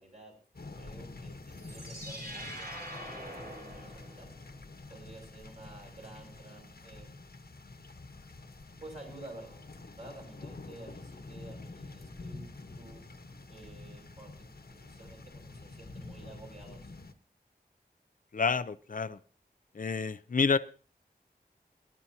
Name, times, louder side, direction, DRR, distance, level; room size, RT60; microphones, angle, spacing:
voice 1, 0.0-4.3 4.9-7.2 8.8-9.7 10.0-13.0 13.5-16.9, right 2 dB, 45° right, 0 dB, 6.0 m, -51 dB
sound 1, 0.5-17.1, left 3 dB, 70° left, 1.2 m, -48 dB
sound 2, 1.4-4.5, equal, 65° right, 5.0 m, -44 dB
voice 2, 18.3-19.2 19.7-20.6, left 5 dB, 55° left, 12 dB, 0.6 m, -29 dB
23.0 x 11.0 x 2.9 m, 0.40 s
wide cardioid pair, 55°, 17 cm